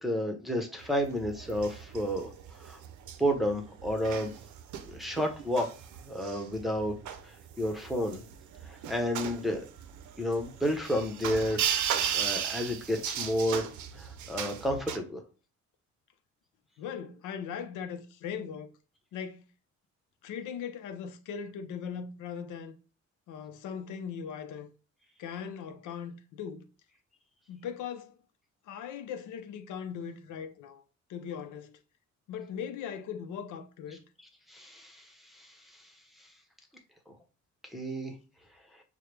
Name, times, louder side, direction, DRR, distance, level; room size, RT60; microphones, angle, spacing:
voice 1, 0.0-2.3 2.6-2.8 3.2-4.3 4.9-5.7 6.0-6.9 7.6-8.2 8.7-9.6 10.2-11.6 12.1-13.7 14.0-15.2 34.5-35.1 35.3-35.5 37.7-38.1, equal, ahead, 0.9 m, -31 dB
sound 1, 0.8-15.0, right 9 dB, 75° right, 0.6 m, -36 dB
voice 2, 16.8-18.7 19.1-19.5 20.2-22.8 23.3-24.7 25.2-26.6 27.5-28.1 28.7-30.8 31.1-31.8 32.3-34.0, left 7 dB, 80° left, 0.6 m, -39 dB
4.6 x 2.2 x 3.3 m
cardioid pair, 90°, 30 cm